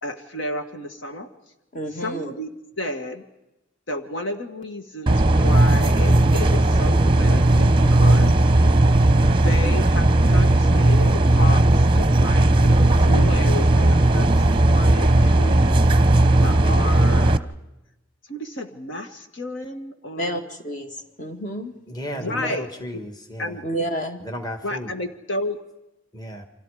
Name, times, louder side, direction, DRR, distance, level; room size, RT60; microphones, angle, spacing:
voice 1, 0.0-1.3 1.9-2.5 2.8-3.3 3.9-8.4 9.3-15.8 16.4-17.5 18.3-20.4 22.1-23.0 23.4-23.6 24.6-25.6, left 1 dB, 65° left, 6 dB, 1.8 m, -32 dB
voice 2, 1.7-2.3 20.2-21.7 22.2-22.5 23.6-24.3, right 1 dB, 40° left, 6 dB, 2.1 m, -30 dB
sound 1, 5.1-17.4, right 1 dB, 25° right, 0.8 m, -16 dB
voice 3, 21.9-23.5 24.2-24.9 26.1-26.5, equal, 20° left, 6 dB, 1.8 m, -34 dB
30.0 x 25.5 x 5.0 m, 0.95 s
head